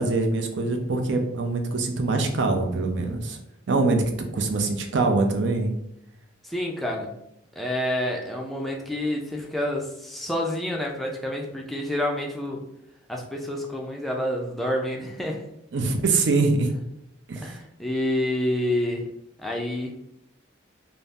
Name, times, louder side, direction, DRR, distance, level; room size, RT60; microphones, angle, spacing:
voice 1, 0.0-3.4 3.7-4.0 4.3-5.7 15.7-16.7 17.3-17.5, right 3 dB, 70° right, 4 dB, 0.5 m, -23 dB
voice 2, 6.4-7.1 7.6-12.6 13.1-15.4 17.4-19.0 19.4-19.9, left 1 dB, ahead, -1 dB, 0.4 m, -28 dB
2.6 x 2.0 x 3.4 m, 0.79 s
head